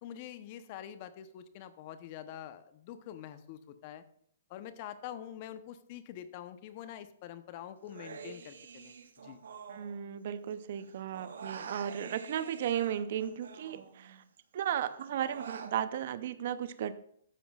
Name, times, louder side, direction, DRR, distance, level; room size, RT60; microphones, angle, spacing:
voice 1, 0.0-4.0 4.5-9.0 9.2-9.4, left 10 dB, 45° left, 12 dB, 0.8 m, -45 dB
Human voice, 7.9-10.5 10.8-14.3 14.6-15.7, right 5 dB, 75° right, 1.0 m, -47 dB
voice 2, 9.7-14.2 14.5-16.9, right 10 dB, 60° right, 14 dB, 0.6 m, -35 dB
13.0 x 9.2 x 2.4 m, 0.67 s
hypercardioid pair, 135°, 0 cm